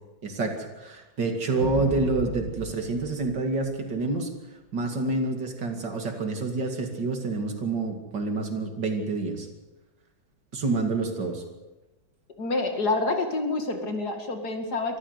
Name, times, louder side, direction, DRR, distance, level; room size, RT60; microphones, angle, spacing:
voice 1, 0.2-4.3 4.7-9.5 10.5-11.4, right 3 dB, 60° right, 5 dB, 3.1 m, -28 dB
sound 1, 1.6-4.0, right 3 dB, 20° right, 2.0 m, -37 dB
voice 2, 12.4-15.0, left 3 dB, 55° left, 5 dB, 2.7 m, -27 dB
24.0 x 14.0 x 8.1 m, 1.1 s
omnidirectional pair, 2.1 m